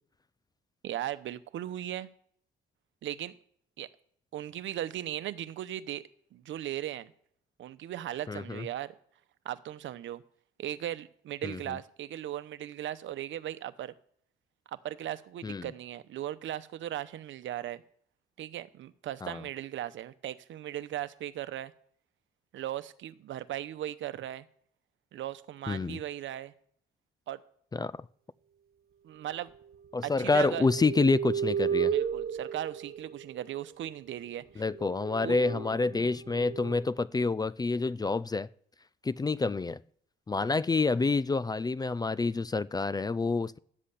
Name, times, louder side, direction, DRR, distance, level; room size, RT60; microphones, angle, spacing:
voice 1, 0.8-2.1 3.0-3.4 3.8-3.9 4.3-6.0 6.3-7.1 7.6-8.9 9.4-10.2 10.6-13.9 14.7-17.8 18.4-21.7 22.5-24.5 25.1-26.5 27.3-27.4 29.0-29.5 30.0-30.7 31.9-34.6 35.2-35.4, right 12 dB, 75° right, 0.9 m, -37 dB
voice 2, 8.3-8.7 11.4-11.8 15.4-15.7 19.2-19.4 25.7-26.0 27.7-28.0 29.9-31.9 34.6-38.5 39.0-39.8 40.3-43.6, left 3 dB, 20° left, 0.4 m, -28 dB
sound 1, 30.0-33.6 34.2-34.3 34.6-36.8, right 8 dB, 50° right, 1.2 m, -34 dB
12.0 x 7.6 x 8.5 m
cardioid pair, 90°, 20 cm